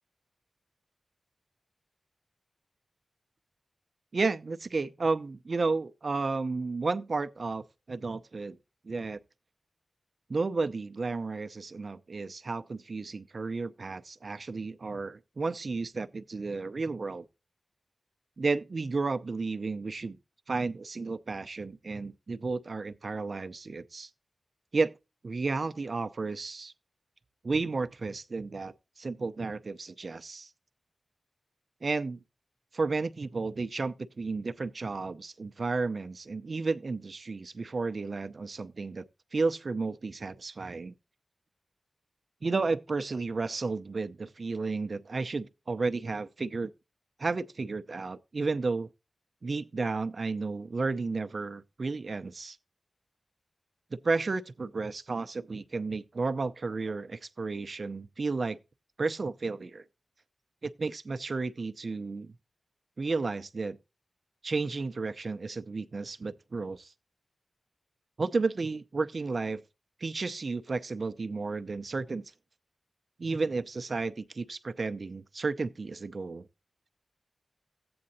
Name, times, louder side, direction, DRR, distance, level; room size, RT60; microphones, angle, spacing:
voice 1, 4.1-8.6 8.8-9.2 10.3-17.3 18.4-20.2 20.5-24.1 24.7-24.9 25.2-26.7 27.4-30.5 31.8-32.2 32.7-39.0 39.3-40.9 42.4-46.7 47.2-48.9 49.4-52.6 53.9-58.6 59.0-59.8 60.6-62.3 63.0-63.8 64.4-66.9 68.2-69.6 70.0-72.3 73.2-76.5, right 3 dB, 60° right, 0.6 m, -32 dB
14.0 x 8.7 x 2.7 m
cardioid pair, 45°, 0 cm